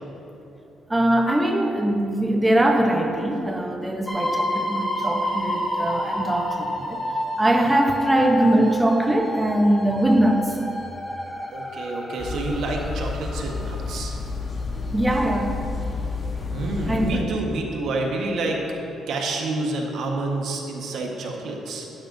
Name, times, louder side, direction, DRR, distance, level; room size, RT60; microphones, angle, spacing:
voice 1, 0.9-10.6 14.9-15.7 16.9-17.4, right 1 dB, 10° right, 3 dB, 0.8 m, -22 dB
sound 1, 4.1-14.0 14.8-14.9 15.2-15.3, left 1 dB, 10° left, 1.6 m, -30 dB
voice 2, 11.5-14.2 14.7-15.0 16.5-18.6 19.1-21.9, right 2 dB, 75° right, 0 dB, 1.4 m, -28 dB
sound 2, 12.2-17.2, left 4 dB, 35° left, 1.1 m, -30 dB
12.0 x 10.5 x 2.7 m, 2.9 s
cardioid pair, 90°, 0 cm